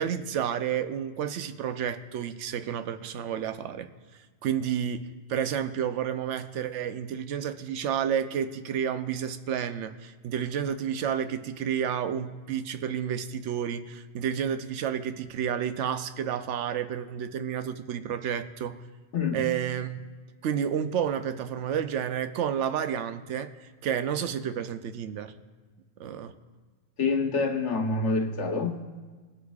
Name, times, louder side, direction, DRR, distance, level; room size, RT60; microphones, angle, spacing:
voice 1, 0.0-3.9 4.4-18.8 19.3-20.0 20.4-25.3 26.0-26.3, right 8 dB, 85° right, 10 dB, 0.9 m, -30 dB
voice 2, 27.0-28.9, left 4 dB, 75° left, 3 dB, 1.3 m, -27 dB
20.0 x 8.2 x 2.4 m, 1.4 s
omnidirectional pair, 1.2 m